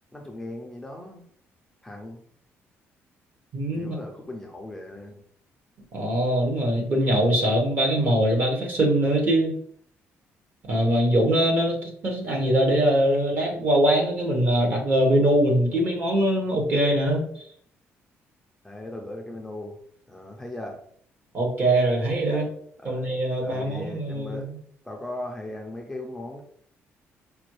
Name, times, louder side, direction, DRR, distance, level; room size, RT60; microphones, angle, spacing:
voice 1, 0.1-1.3 1.8-2.2 3.7-5.2 18.6-19.8 20.1-20.8 22.8-23.1 23.4-24.5 24.8-26.4, left 1 dB, 10° left, 0 dB, 0.4 m, -38 dB
voice 2, 3.5-4.0 5.9-9.5 10.7-17.3 21.3-22.5 22.8-24.6, right 1 dB, 40° right, 0 dB, 1.1 m, -22 dB
5.1 x 2.3 x 3.1 m, 0.63 s
cardioid pair, 155°, 5 cm